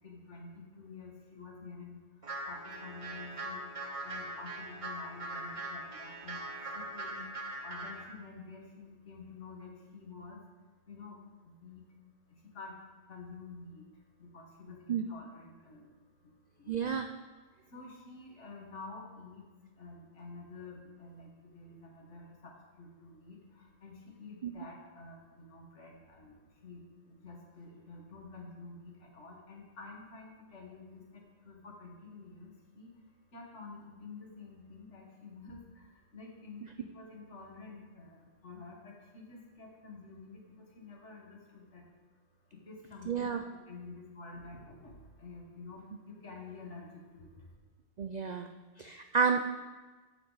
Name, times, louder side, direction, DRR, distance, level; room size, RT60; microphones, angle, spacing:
voice 1, 0.0-2.0 2.5-3.6 4.0-6.4 6.7-7.3 7.6-10.4 10.9-11.2 11.5-11.8 12.5-12.7 13.1-13.8 14.2-15.9 16.6-16.9 17.7-19.4 19.8-26.3 26.6-32.9 33.3-35.6 36.1-38.2 38.4-40.4 40.8-41.8 42.7-44.9 45.2-45.8 46.2-47.3, left 3 dB, 70° left, 0 dB, 1.8 m, -49 dB
sound 1, 2.2-8.0, right 1 dB, 30° right, 0.8 m, -41 dB
voice 2, 16.7-17.1 24.4-24.5 43.1-43.4 48.0-48.5 48.8-49.4, right 6 dB, 65° right, 6 dB, 0.4 m, -30 dB
14.0 x 5.7 x 4.0 m, 1.3 s
omnidirectional pair, 1.3 m